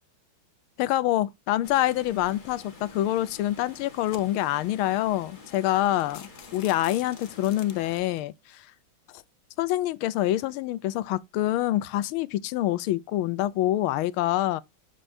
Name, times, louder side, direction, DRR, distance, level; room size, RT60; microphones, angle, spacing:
voice 1, 0.8-8.6 9.6-14.6, left 14 dB, 85° left, 1.5 m, -26 dB
Water, 1.6-8.0, left 3 dB, 25° left, 1.3 m, -48 dB
sound 1, 2.8-3.1 3.6-4.6 5.2-5.3 5.5-5.7 6.0-8.2, left 8 dB, 60° left, 0.8 m, -47 dB
13.0 x 4.4 x 2.6 m
omnidirectional pair, 2.2 m